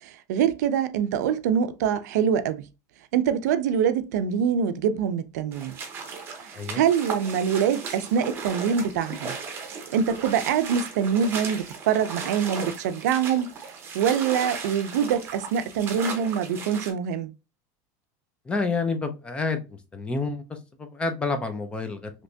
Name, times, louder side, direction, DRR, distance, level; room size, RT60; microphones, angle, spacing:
voice 1, 0.0-2.7 3.1-5.8 6.4-9.4 9.9-13.5 13.9-17.3, right 8 dB, 90° right, 0.5 m, -24 dB
sound 1, 5.5-16.9, right 5 dB, 25° right, 0.9 m, -36 dB
voice 2, 18.5-22.1, left 3 dB, 10° left, 0.5 m, -29 dB
3.3 x 2.9 x 2.6 m
supercardioid pair, 160°, 9 cm